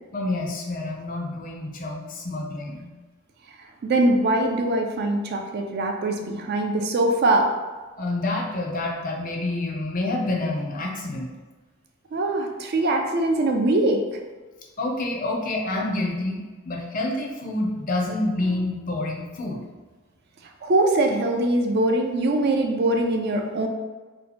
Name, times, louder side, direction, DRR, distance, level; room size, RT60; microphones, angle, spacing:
voice 1, 0.1-2.9 8.0-11.3 14.8-19.6, left 2 dB, 40° left, 0 dB, 0.5 m, -28 dB
voice 2, 3.8-7.5 12.1-14.2 20.6-23.7, right 2 dB, 50° right, 3 dB, 0.3 m, -22 dB
2.7 x 2.2 x 4.1 m, 1.3 s
head